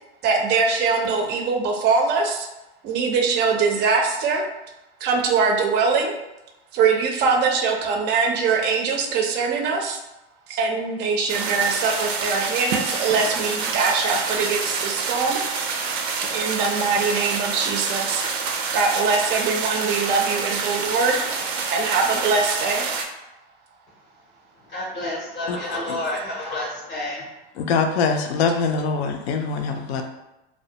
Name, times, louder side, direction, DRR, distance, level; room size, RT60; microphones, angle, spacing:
voice 1, 0.2-2.5 2.8-4.4 5.0-6.1 6.7-10.0 10.5-15.4 16.3-18.2 18.7-21.2 21.7-22.9 25.7-25.8 28.7-28.8, right 4 dB, 35° right, 2 dB, 0.4 m, -22 dB
sound 1, 11.3-23.0, right 5 dB, 85° right, 0.5 m, -27 dB
voice 2, 24.7-27.3, left 1 dB, 25° left, -3 dB, 0.5 m, -29 dB
voice 3, 27.6-30.0, left 5 dB, 80° left, 4 dB, 0.5 m, -23 dB
2.2 x 2.1 x 2.7 m, 0.96 s
hypercardioid pair, 105°, 31 cm